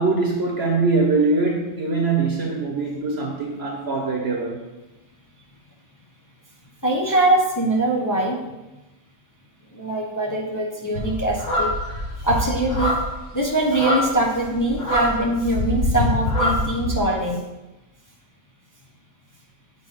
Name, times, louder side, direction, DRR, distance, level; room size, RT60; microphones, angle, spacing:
voice 1, 0.0-4.6, right 3 dB, 50° right, -1 dB, 1.2 m, -22 dB
voice 2, 6.8-8.4 9.7-11.8 12.2-13.0 13.3-17.4, right 1 dB, 20° left, -1 dB, 0.6 m, -22 dB
sound 1, 10.9-17.1, left 1 dB, 65° left, 2.4 m, -24 dB
7.0 x 4.2 x 5.6 m, 1.0 s
omnidirectional pair, 1.4 m